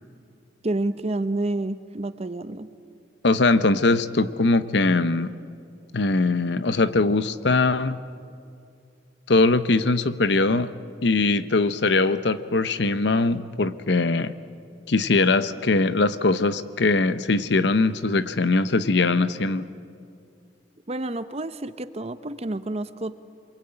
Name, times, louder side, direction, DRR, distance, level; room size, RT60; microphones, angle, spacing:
voice 1, 0.6-2.7 20.9-23.1, right 2 dB, 35° right, 12 dB, 0.8 m, -29 dB
voice 2, 3.2-5.3 5.9-8.0 9.3-10.7 11.0-14.3 14.9-19.7, left 3 dB, 65° left, 13 dB, 0.8 m, -21 dB
26.5 x 23.0 x 8.9 m, 2.4 s
head